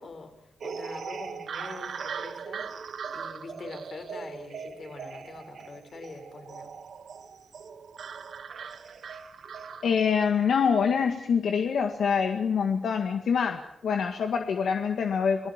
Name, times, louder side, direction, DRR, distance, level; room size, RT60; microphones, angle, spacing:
voice 1, 0.0-2.6 3.1-6.7, left 4 dB, 50° left, 5 dB, 5.5 m, -44 dB
sound 1, 0.6-10.3, right 6 dB, 70° right, 1.8 m, -40 dB
voice 2, 9.8-15.5, left 6 dB, 75° left, 4 dB, 1.9 m, -25 dB
29.0 x 19.5 x 7.4 m, 0.71 s
wide cardioid pair, 135°, 0 cm